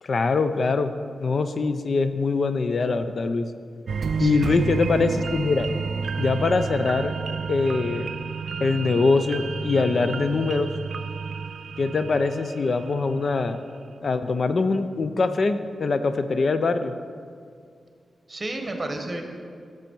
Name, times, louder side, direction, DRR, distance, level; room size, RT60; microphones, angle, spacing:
voice 1, 0.0-0.9 1.2-3.5 4.2-5.7 6.2-7.1 7.5-8.1 8.6-10.7 11.8-13.6 14.0-16.9, left 4 dB, 55° left, 10 dB, 0.4 m, -23 dB
sound 1, 3.9-13.2 13.6-13.7, right 5 dB, 70° right, 0.3 m, -31 dB
voice 2, 4.2-4.6 18.3-19.2, right 2 dB, 30° right, 4 dB, 1.3 m, -32 dB
11.5 x 7.5 x 4.5 m, 2.2 s
cardioid pair, 85°, 0 cm